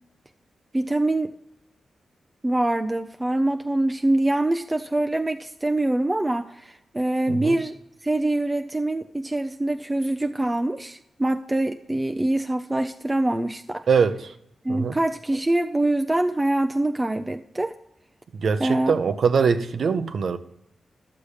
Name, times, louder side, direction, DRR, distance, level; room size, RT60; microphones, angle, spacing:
voice 1, 0.7-1.3 2.4-7.7 8.0-13.8 14.6-17.7 18.6-18.9, right 1 dB, 20° right, 6 dB, 0.5 m, -24 dB
voice 2, 7.3-7.6 13.9-14.3 14.7-15.0 18.3-20.4, right 5 dB, 70° right, 11 dB, 0.7 m, -22 dB
12.0 x 7.0 x 4.9 m, 0.78 s
cardioid pair, 75°, 0 cm